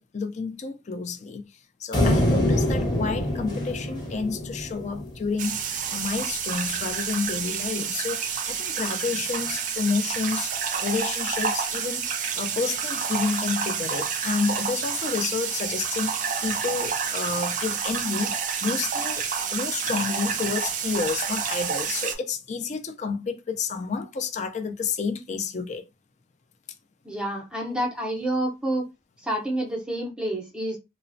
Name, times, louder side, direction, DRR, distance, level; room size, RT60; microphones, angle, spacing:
voice 1, 0.0-1.4 1.8-10.5 10.8-18.3 18.6-19.2 19.5-25.8, left 4 dB, 40° left, 0.4 m, -30 dB
sound 1, 1.9-5.3, left 1 dB, 25° left, 0.8 m, -25 dB
sound 2, 5.4-22.2, right 6 dB, 45° right, 0.4 m, -29 dB
voice 2, 27.0-28.8 29.2-30.8, right 1 dB, 5° right, 0.6 m, -28 dB
3.0 x 2.0 x 2.6 m
head